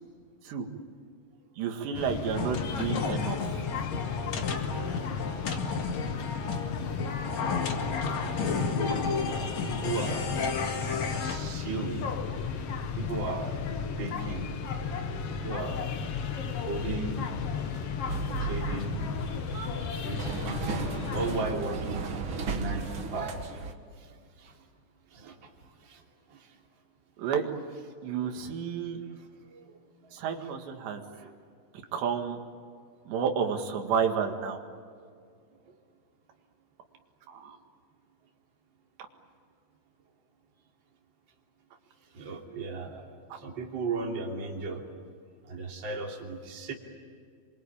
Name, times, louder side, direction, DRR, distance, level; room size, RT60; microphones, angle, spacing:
voice 1, 1.6-3.6 27.2-27.5 28.0-29.0 30.1-31.0 31.9-32.4 33.1-34.6 37.3-37.6, right 7 dB, 85° right, 4 dB, 4.1 m, -31 dB
sound 1, 1.9-21.5, left 6 dB, 70° left, 1.4 m, -34 dB
sound 2, 2.3-11.4, left 4 dB, 50° left, 2.8 m, -33 dB
voice 2, 9.6-10.3 11.1-12.2 12.9-13.5 14.0-14.6 15.4-15.8 16.6-17.2 18.4-19.0 19.9-22.1 22.5-23.3 24.4-24.5 25.1-25.3 25.8-26.0 26.3-26.5 29.4-29.7 31.2-31.3 42.1-43.1 43.4-44.8 45.4-46.7, right 3 dB, 30° right, 1 dB, 3.2 m, -35 dB
sound 3, 18.1-23.7, right 4 dB, 50° right, 1.5 m, -35 dB
28.0 x 24.0 x 8.8 m, 2.2 s
omnidirectional pair, 4.8 m